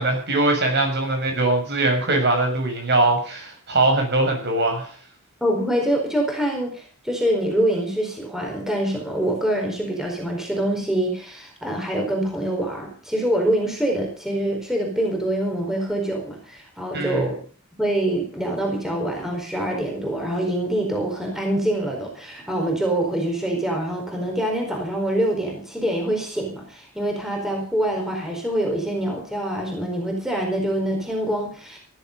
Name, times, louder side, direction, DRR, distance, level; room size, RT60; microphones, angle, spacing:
voice 1, 0.0-4.9 16.9-17.3, right 2 dB, 50° right, 3 dB, 7.0 m, -21 dB
voice 2, 5.4-17.4 17.8-31.8, right 1 dB, ahead, 1 dB, 4.5 m, -25 dB
18.0 x 12.0 x 5.4 m, 0.42 s
head